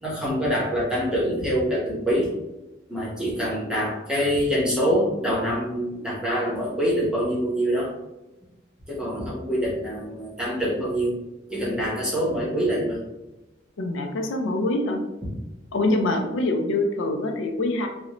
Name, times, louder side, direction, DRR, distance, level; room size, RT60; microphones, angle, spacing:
voice 1, 0.0-2.3 2.9-7.9 8.9-11.1 11.5-13.0 16.1-16.2, equal, 5° right, -7 dB, 0.8 m, -25 dB
voice 2, 13.8-15.0 15.7-17.9, left 2 dB, 85° left, 4 dB, 0.4 m, -24 dB
2.6 x 2.1 x 2.9 m, 0.99 s
head